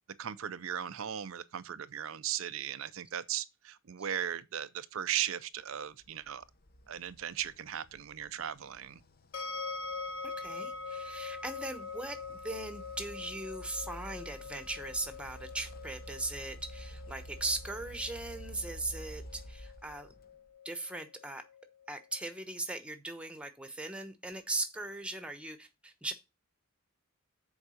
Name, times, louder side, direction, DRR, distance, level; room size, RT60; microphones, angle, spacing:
voice 1, 0.2-6.4 6.9-9.0, right 10 dB, 70° right, 0.5 m, -37 dB
sound 1, 6.0-20.5, equal, 45° left, 0.8 m, -50 dB
sound 2, 9.3-22.3, left 4 dB, 60° left, 1.2 m, -44 dB
voice 2, 10.2-20.1 20.6-21.4 21.9-26.1, right 2 dB, 5° right, 1.0 m, -39 dB
7.2 x 4.7 x 6.3 m
head